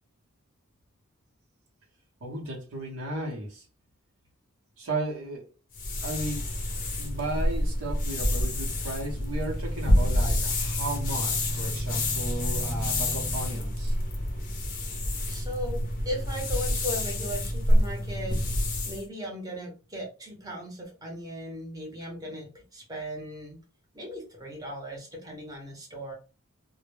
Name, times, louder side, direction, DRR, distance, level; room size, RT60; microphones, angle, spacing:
voice 1, 2.2-3.6 4.8-5.5 6.0-6.5 7.0-13.9, right 2 dB, 80° right, 0.7 m, -35 dB
sound 1, 5.7-19.0, left 1 dB, 40° left, 0.5 m, -28 dB
sound 2, 9.7-14.4, equal, 50° right, 0.5 m, -42 dB
voice 2, 15.3-18.4 18.8-23.6 23.9-26.1, equal, 20° right, 0.7 m, -37 dB
2.1 x 2.0 x 3.1 m
head